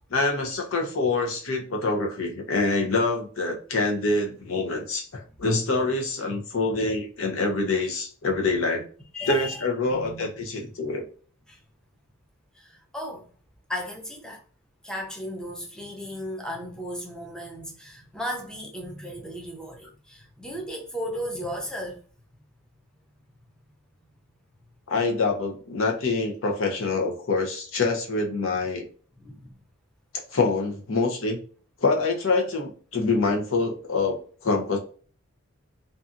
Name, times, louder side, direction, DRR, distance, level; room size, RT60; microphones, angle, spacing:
voice 1, 0.1-8.8 9.3-11.0 24.9-28.8 30.3-31.4 31.8-34.8, left 3 dB, 80° left, 0.7 m, -25 dB
voice 2, 9.1-10.6 11.5-11.6 12.5-13.3 13.7-14.4 14.8-22.0 29.2-29.5, equal, 5° left, 0.5 m, -35 dB
2.7 x 2.3 x 2.5 m
head